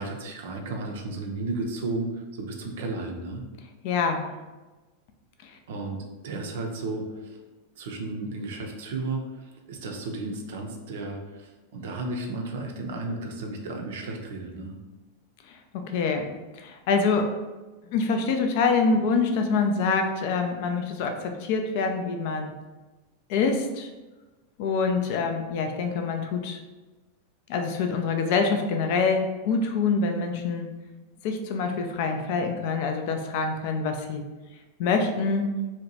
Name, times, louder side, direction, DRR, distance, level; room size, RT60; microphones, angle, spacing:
voice 1, 0.0-3.4 5.7-7.4 7.8-14.7, right 2 dB, 55° right, 2 dB, 0.4 m, -33 dB
voice 2, 3.8-4.3 5.4-5.5 15.7-16.3 16.5-17.3 17.9-22.5 23.3-23.9 24.6-26.6 27.5-30.7 31.2-34.2 34.8-35.5, left 4 dB, 50° left, 5 dB, 0.3 m, -25 dB
2.7 x 2.1 x 2.7 m, 1.2 s
figure-of-eight pair, 90°, 0 cm